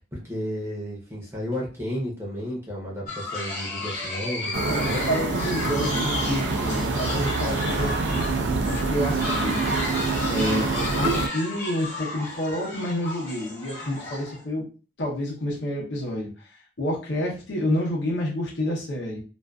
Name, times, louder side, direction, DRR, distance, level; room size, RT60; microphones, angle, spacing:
voice 1, 0.1-5.0, equal, 15° right, -4 dB, 0.7 m, -32 dB
sound 1, 3.1-14.4, left 2 dB, 50° left, 1.1 m, -33 dB
sound 2, 4.5-11.3, right 4 dB, 75° right, 0.4 m, -26 dB
voice 2, 4.6-9.9 10.3-10.7 11.0-14.6 15.0-19.2, left 1 dB, 75° left, -3 dB, 0.7 m, -29 dB
2.4 x 2.3 x 2.2 m, 0.35 s
head